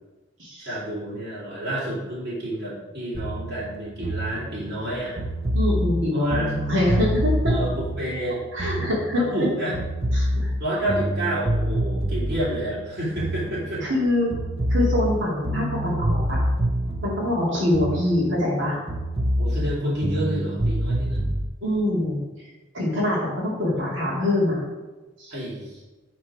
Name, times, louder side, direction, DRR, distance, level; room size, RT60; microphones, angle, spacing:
voice 1, 0.6-5.2 6.1-6.5 7.5-8.5 9.1-9.8 10.6-13.8 19.4-21.2 25.3-25.8, right 1 dB, 50° right, -9 dB, 2.9 m, -29 dB
sound 1, 3.1-9.5 9.7-14.0 14.3-18.6 18.9-21.4, equal, 30° right, 0.6 m, -26 dB
voice 2, 5.5-6.4 6.7-7.5 8.5-9.2 10.1-10.5 13.8-14.3 14.7-16.4 17.0-18.8 21.6-22.2 22.7-24.6 25.2-25.3, left 1 dB, 70° right, -5 dB, 2.6 m, -24 dB
9.6 x 4.4 x 4.8 m, 1.1 s
head